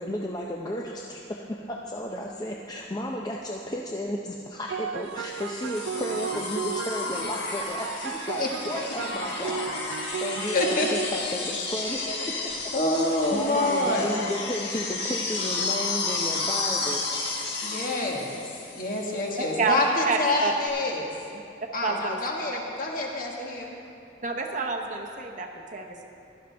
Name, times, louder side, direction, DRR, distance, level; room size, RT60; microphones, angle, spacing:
voice 1, 0.0-9.7 10.1-12.7 13.3-17.0, left 1 dB, 20° left, -1 dB, 0.5 m, -33 dB
sound 1, 4.7-12.1, right 6 dB, 85° right, 0.3 m, -35 dB
sound 2, 5.2-19.2 20.7-20.8, left 3 dB, 65° left, 1.6 m, -32 dB
voice 2, 10.5-10.9 12.0-12.2 12.7-14.1 17.6-18.4 18.7-21.1 21.7-23.8, left 2 dB, 45° left, -1 dB, 1.6 m, -27 dB
voice 3, 20.1-20.5 21.8-22.2 24.2-26.0, right 4 dB, 40° right, 3 dB, 0.8 m, -28 dB
15.5 x 12.0 x 3.4 m, 2.6 s
head